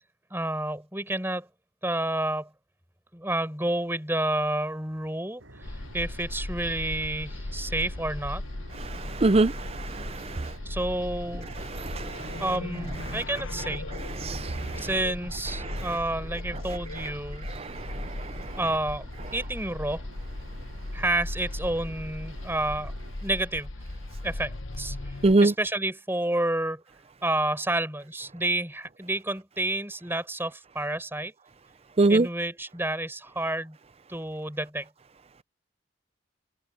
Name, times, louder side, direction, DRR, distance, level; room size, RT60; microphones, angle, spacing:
voice 1, 0.3-1.5 1.8-2.5 3.1-5.4 5.7-8.4 10.6-11.5 12.4-13.9 14.8-17.5 18.5-19.0 19.3-20.0 20.9-22.9 23.2-23.7 24.2-25.1 25.4-26.8 27.2-31.3 32.1-33.8 34.1-34.9, right 1 dB, 10° right, 5.1 m, -30 dB
sound 1, 5.4-23.1, right 1 dB, 80° right, 7.9 m, -49 dB
sound 2, 5.6-25.3, left 2 dB, 75° left, 1.1 m, -37 dB
voice 2, 8.8-10.5 11.7-12.4 14.2-14.9 15.6-15.8 17.6-18.5 25.2-25.5 32.0-32.3, right 2 dB, 30° right, 0.5 m, -25 dB
head